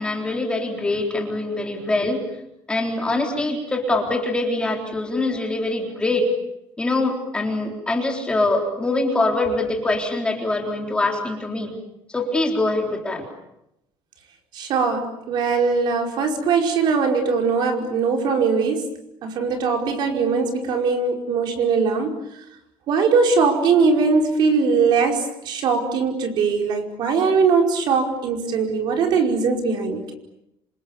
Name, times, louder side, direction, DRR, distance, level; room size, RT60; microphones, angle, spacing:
voice 1, 0.0-2.2 2.7-6.3 6.8-11.7 12.1-13.2, left 2 dB, 10° left, 2 dB, 3.9 m, -23 dB
voice 2, 14.5-22.4 22.9-30.1, right 5 dB, 55° right, 3 dB, 5.1 m, -21 dB
28.5 x 27.0 x 7.2 m, 0.82 s
cardioid pair, 180°, 9 cm